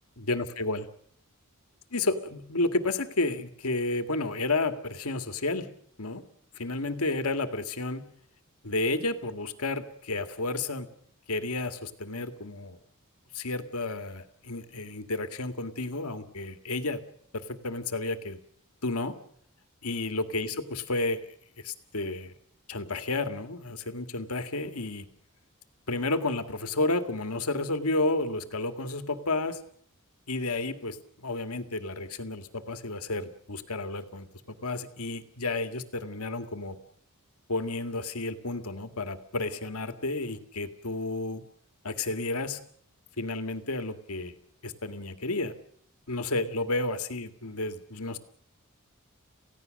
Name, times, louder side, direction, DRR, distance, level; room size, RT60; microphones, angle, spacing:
voice 1, 0.2-0.8 1.9-5.7 6.0-6.2 6.5-8.1 8.6-10.9 11.3-12.8 13.3-17.0 17.3-18.4 18.8-19.1 19.8-21.2 21.6-22.3 22.7-25.1 25.9-29.6 30.3-36.8 37.5-41.4 41.8-42.6 43.2-44.4 44.6-45.5 46.1-48.2, left 2 dB, 75° left, 9 dB, 2.0 m, -31 dB
28.5 x 16.5 x 6.5 m, 0.64 s
head